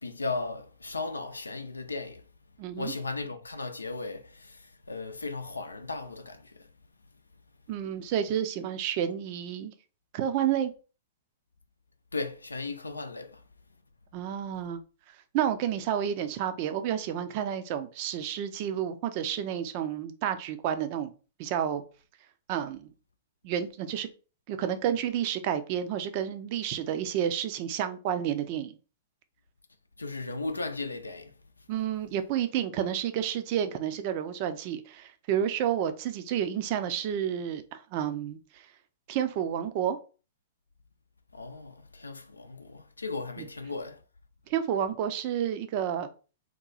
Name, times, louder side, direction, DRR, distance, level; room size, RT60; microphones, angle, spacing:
voice 1, 0.0-2.2 2.8-6.7 12.1-13.4 30.0-31.7 41.3-44.0, left 3 dB, 85° left, 0.5 m, -36 dB
voice 2, 2.6-2.9 7.7-9.7 10.1-10.7 14.1-14.8 15.3-21.1 21.4-21.8 22.5-22.9 23.4-24.1 24.5-28.8 31.7-38.7 39.1-40.0 43.4-43.5 44.5-46.1, right 9 dB, 45° right, 0.5 m, -30 dB
2.9 x 2.2 x 3.9 m
figure-of-eight pair, 110°, 0 cm